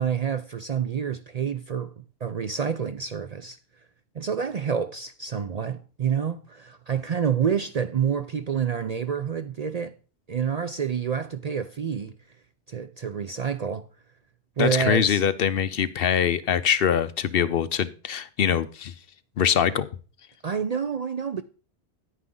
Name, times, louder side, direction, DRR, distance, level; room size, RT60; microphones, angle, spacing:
voice 1, 0.0-3.6 4.1-10.0 10.3-12.1 12.7-13.9 14.6-15.2 20.4-21.4, right 7 dB, 50° right, 0.5 m, -28 dB
voice 2, 14.6-18.9 19.4-19.9, left 8 dB, 60° left, 0.8 m, -23 dB
9.8 x 9.6 x 3.8 m
omnidirectional pair, 1.1 m